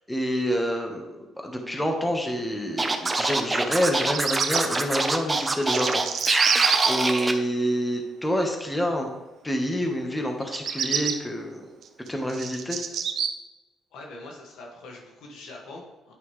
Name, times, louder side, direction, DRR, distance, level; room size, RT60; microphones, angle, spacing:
voice 1, 0.1-9.1 9.4-11.6 12.1-12.8, equal, 10° left, 3 dB, 1.2 m, -27 dB
Scratching (performance technique), 2.8-7.3, right 3 dB, 25° right, 0.7 m, -25 dB
Bird vocalization bird call bird song, 3.8-4.6 5.4-6.9 10.4-11.1 11.8-13.3, right 7 dB, 65° right, 0.6 m, -26 dB
voice 2, 13.9-16.1, left 2 dB, 80° left, -1 dB, 1.8 m, -43 dB
9.5 x 5.4 x 3.2 m, 1.0 s
cardioid pair, 85°, 0 cm